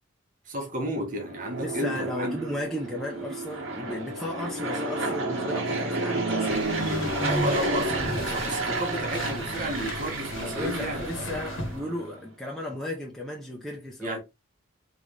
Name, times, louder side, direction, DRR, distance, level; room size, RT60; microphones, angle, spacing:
voice 1, 0.5-2.4 7.2-11.3 14.0-14.2, equal, 40° right, 1.3 m, -32 dB
Fixed-wing aircraft airplane, 1.1-12.2, right 2 dB, 80° right, 2.4 m, -31 dB
voice 2, 1.6-6.7 10.4-14.2, left 1 dB, ahead, 0.7 m, -35 dB
sound 1, 6.5-11.8, left 2 dB, 75° left, 1.0 m, -38 dB
3.9 x 3.4 x 3.2 m
head